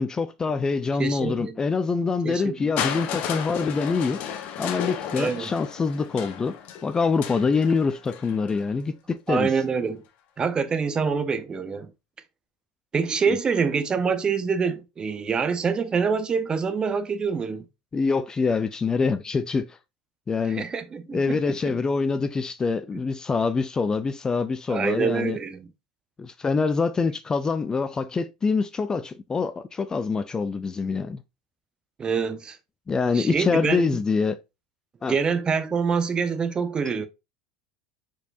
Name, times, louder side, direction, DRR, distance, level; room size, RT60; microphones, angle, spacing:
voice 1, 0.0-4.2 4.6-6.6 6.8-9.5 13.3-13.4 17.9-19.8 20.3-20.6 21.1-25.4 26.2-31.2 32.9-34.4 35.0-35.2, left 4 dB, 20° left, 0.4 m, -25 dB
voice 2, 1.0-1.6 2.2-2.7 5.2-5.5 9.3-10.0 10.4-11.9 12.9-17.6 20.5-21.7 24.7-25.7 32.0-32.6 33.1-34.0 35.1-37.1, right 5 dB, 25° right, 0.7 m, -26 dB
Crushing, 2.8-8.7 9.6-9.7, left 8 dB, 50° left, 0.9 m, -33 dB
4.5 x 4.5 x 2.5 m
hypercardioid pair, 85°, 3 cm